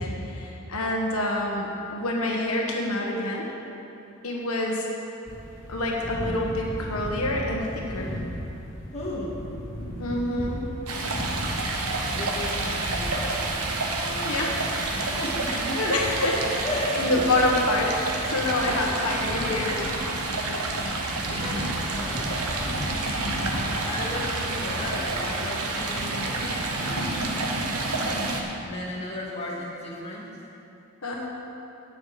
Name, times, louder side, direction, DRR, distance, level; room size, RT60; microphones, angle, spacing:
voice 1, 0.0-3.5 4.2-4.8 5.7-8.1 10.0-10.7 14.2-14.5 15.7-16.6 16.9-17.9 18.3-19.8 31.0-31.3, left 1 dB, 80° left, -1 dB, 1.3 m, -27 dB
sound 1, 5.3-23.7, equal, 50° left, 2.6 m, -37 dB
voice 2, 8.9-9.4 12.1-13.5 14.0-14.6 14.9-15.9 16.6-16.8 17.1-17.2 18.6-19.0 19.3-19.9 20.5-20.9 21.3-22.3 22.6-23.4 23.7-30.3, left 1 dB, 30° left, -6 dB, 2.0 m, -36 dB
Stream, 10.9-28.4, right 2 dB, 90° right, 1.2 m, -29 dB
17.0 x 6.4 x 4.9 m, 2.8 s
head